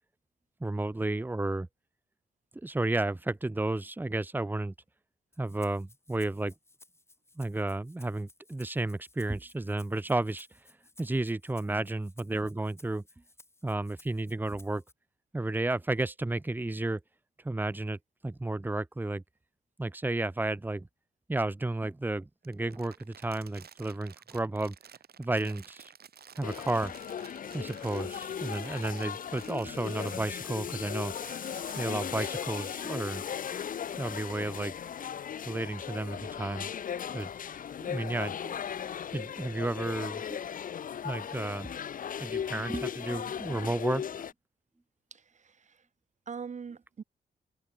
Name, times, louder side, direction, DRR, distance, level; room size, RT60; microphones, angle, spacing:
voice 1, 0.6-1.7 2.6-4.7 5.4-6.5 7.4-10.5 11.0-13.0 13.6-14.8 15.3-17.0 17.4-18.0 18.2-19.2 19.8-20.9 21.3-24.7 25.2-25.9 26.4-26.9 27.5-31.1 31.8-33.2 34.0-34.7 35.4-36.7 37.1-37.3 37.8-38.6 39.1-40.4 41.0-41.7 42.2-44.2, right 2 dB, 10° right, 1.3 m, -32 dB
Rattle (instrument), 5.3-14.9, left 2 dB, 15° left, 6.5 m, -59 dB
Crumpling crinkling, 22.4-32.5, right 8 dB, 65° right, 6.5 m, -53 dB
sound 1, 26.4-44.3, left 8 dB, 55° left, 0.7 m, -37 dB
voice 2, 45.1-45.9 46.3-47.0, right 6 dB, 45° right, 2.9 m, -43 dB
wide cardioid pair, 140°, 17 cm